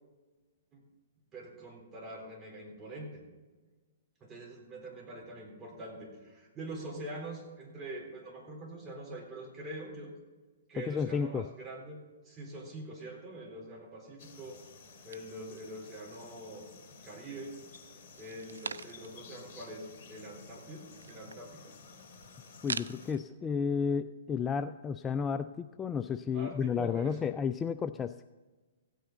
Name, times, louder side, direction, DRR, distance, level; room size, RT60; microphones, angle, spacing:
voice 1, 1.3-3.2 4.2-10.1 10.7-14.6 15.0-16.7 17.0-17.6 18.2-21.7 26.3-27.3, right 1 dB, 20° right, -1 dB, 3.8 m, -44 dB
voice 2, 10.8-11.5 22.6-28.2, left 6 dB, 15° left, 11 dB, 0.3 m, -32 dB
sound 1, 14.2-23.1, left 4 dB, 40° left, 3.0 m, -53 dB
sound 2, 15.1-16.4 16.8-17.5 18.0-19.3 19.6-19.7 19.9-23.2, right 5 dB, 80° right, 0.4 m, -44 dB
16.0 x 9.1 x 3.9 m, 1.3 s
hypercardioid pair, 125°, 0 cm